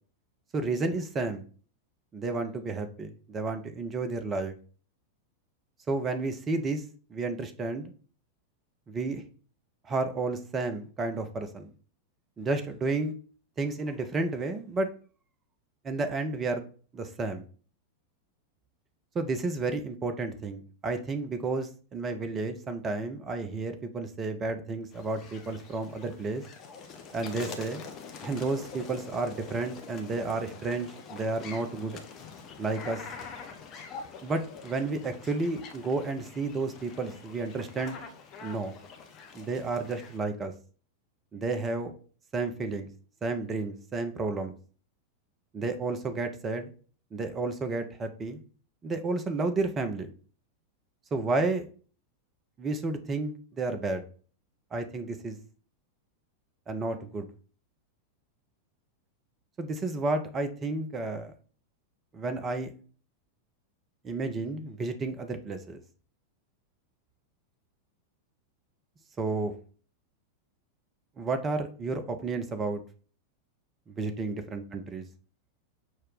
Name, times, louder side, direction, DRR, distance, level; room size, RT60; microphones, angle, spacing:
voice 1, 0.5-1.4 2.1-4.6 5.9-6.8 7.1-7.9 8.9-9.2 9.8-11.7 12.4-13.1 13.6-14.9 15.8-16.6 16.9-17.4 19.1-26.4 27.1-27.8 28.2-32.0 32.6-33.0 34.2-38.0 38.4-38.7 39.3-40.5 41.3-41.9 42.3-42.9 43.2-44.5 45.5-46.7 47.1-48.4 48.8-50.1 51.1-51.6 52.6-54.0 54.7-55.4 56.7-57.3 59.6-61.3 62.1-62.7 64.0-65.8 69.2-69.5 71.2-72.8 74.0-75.0, right 3 dB, 25° right, 8 dB, 0.6 m, -31 dB
sound 1, 24.9-40.2, left 5 dB, 30° left, 0.6 m, -45 dB
6.3 x 2.2 x 3.8 m, 0.40 s
figure-of-eight pair, 90°, 0 cm